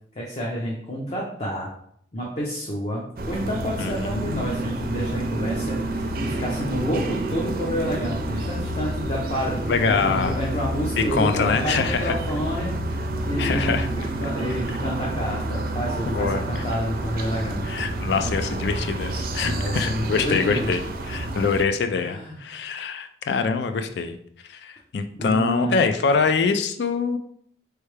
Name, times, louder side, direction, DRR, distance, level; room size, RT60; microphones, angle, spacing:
voice 1, 0.1-1.7 2.1-17.6 19.4-20.7 22.0-22.4 25.2-25.8, equal, 35° left, -3 dB, 0.7 m, -29 dB
sound 1, 3.2-21.7, right 1 dB, 55° right, 0.5 m, -29 dB
voice 2, 3.8-4.4 9.7-10.4 11.0-12.1 13.4-13.9 16.1-16.4 17.7-20.8 21.1-24.2 24.5-27.2, left 5 dB, 70° left, 8 dB, 0.4 m, -24 dB
4.5 x 3.3 x 3.2 m, 0.65 s
head